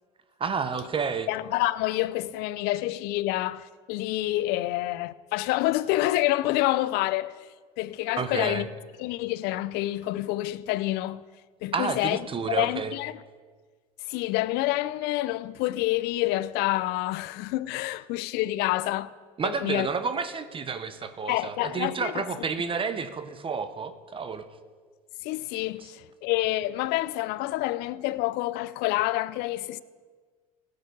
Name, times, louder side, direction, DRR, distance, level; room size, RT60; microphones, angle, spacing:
voice 1, 0.4-1.3 8.2-8.7 11.7-12.9 19.4-24.5, right 5 dB, 30° right, 0.9 m, -30 dB
voice 2, 1.3-7.3 7.8-8.7 9.0-11.2 11.6-12.2 12.5-13.2 14.1-19.1 19.4-19.9 21.3-22.2 25.2-29.8, left 17 dB, 60° left, 0.5 m, -28 dB
16.5 x 6.7 x 5.3 m
hypercardioid pair, 80°, 19 cm